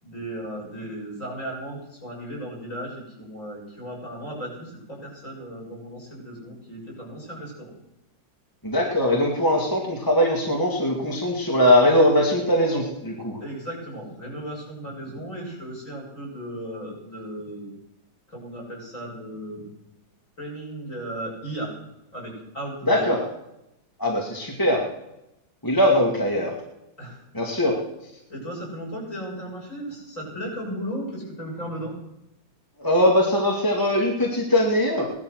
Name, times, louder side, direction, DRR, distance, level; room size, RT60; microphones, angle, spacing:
voice 1, 0.0-7.7 13.4-17.7 18.3-19.8 20.4-21.7 22.1-23.1 27.0-27.2 27.5-27.6 28.3-31.9, right 1 dB, 40° left, -3 dB, 8.0 m, -35 dB
voice 2, 8.6-13.4 22.9-23.2 24.0-24.8 25.6-26.5 27.3-27.7 32.8-35.0, left 1 dB, 10° left, -1 dB, 2.2 m, -21 dB
18.5 x 12.0 x 6.4 m, 0.88 s
omnidirectional pair, 2.2 m